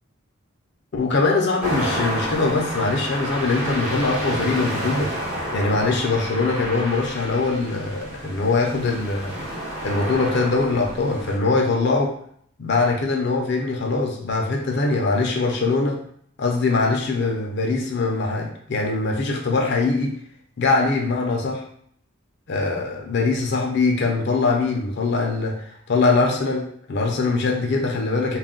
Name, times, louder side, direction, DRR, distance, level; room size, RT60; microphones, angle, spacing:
voice 1, 0.9-5.1 5.5-9.3 9.8-12.1 12.6-16.0 16.4-20.1 20.6-21.6 22.5-28.4, left 3 dB, 55° left, 0 dB, 0.5 m, -22 dB
sound 1, 1.6-11.4, equal, 40° right, 0.8 m, -30 dB
2.3 x 2.1 x 3.6 m, 0.64 s
head